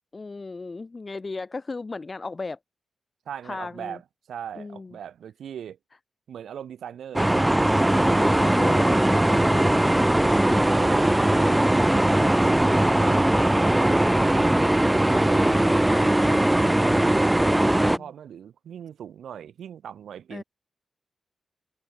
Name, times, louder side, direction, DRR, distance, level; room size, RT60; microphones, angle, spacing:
voice 1, 0.1-2.6 3.4-4.0 4.6-4.9 8.1-10.1 17.6-18.1 20.3-20.4, left 3 dB, 40° left, 2.0 m, -35 dB
voice 2, 3.3-4.0 4.3-5.8 6.3-8.9 10.6-14.6 15.1-20.4, right 9 dB, 85° right, 4.3 m, -40 dB
sound 1, 7.2-18.0, right 1 dB, 10° right, 0.6 m, -20 dB
cardioid pair, 50°, 0 cm